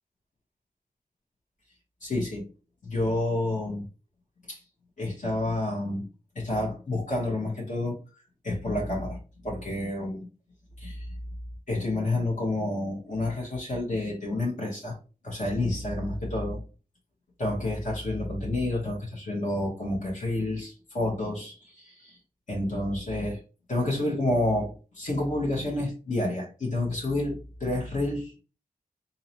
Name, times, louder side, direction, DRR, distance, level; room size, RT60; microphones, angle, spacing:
voice 1, 2.0-2.5 2.8-3.9 4.5-4.6 5.0-6.1 6.3-8.0 8.4-9.2 9.4-10.3 10.8-11.1 11.7-15.0 15.2-16.6 17.4-22.2 22.5-23.4 23.7-28.3, left 1 dB, 55° left, -3 dB, 1.3 m, -29 dB
4.1 x 2.8 x 2.9 m, 0.34 s
wide cardioid pair, 140°, 15 cm